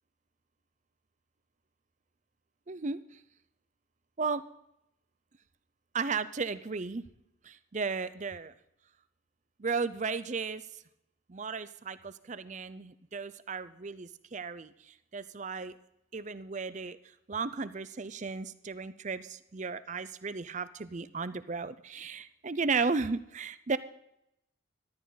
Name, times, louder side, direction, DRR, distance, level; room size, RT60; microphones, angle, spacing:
voice 1, 2.7-3.2 4.2-4.4 5.9-7.0 7.4-8.5 9.6-10.8 11.3-15.7 16.1-17.0 17.3-23.8, right 4 dB, 35° right, 15 dB, 0.5 m, -35 dB
14.0 x 12.5 x 4.0 m, 0.82 s
head